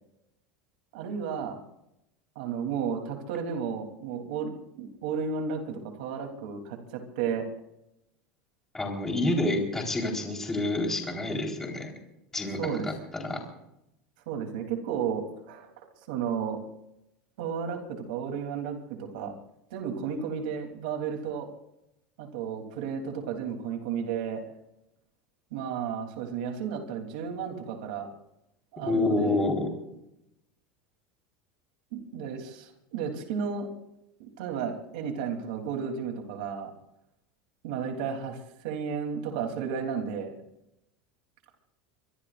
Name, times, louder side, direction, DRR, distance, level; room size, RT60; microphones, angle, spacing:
voice 1, 0.9-1.6 2.3-7.5 12.6-12.9 14.3-15.7 16.1-16.6 17.4-17.8 18.1-19.3 19.7-21.5 22.2-24.4 25.5-28.1 28.7-29.4 31.9-33.7 34.2-36.7 37.6-40.3, right 7 dB, 75° right, 3 dB, 3.3 m, -33 dB
voice 2, 8.7-11.9 12.3-13.4 28.8-29.7, left 2 dB, 10° left, 0 dB, 4.2 m, -28 dB
24.5 x 22.0 x 2.6 m, 0.83 s
supercardioid pair, 155°, 4 cm